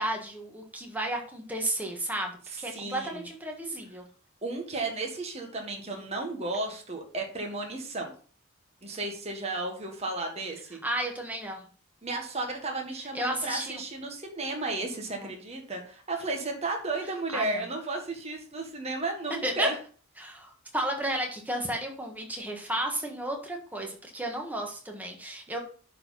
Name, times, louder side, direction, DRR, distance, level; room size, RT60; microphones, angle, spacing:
voice 1, 0.0-2.3 2.6-4.0 10.8-11.7 13.1-13.8 15.2-15.3 17.3-17.6 19.3-19.7 20.2-25.6, right 1 dB, 10° right, 1 dB, 1.5 m, -33 dB
voice 2, 2.5-3.3 4.4-8.1 8.8-10.8 12.0-19.8, right 2 dB, 30° right, 2 dB, 1.5 m, -33 dB
11.0 x 4.2 x 4.1 m, 0.42 s
head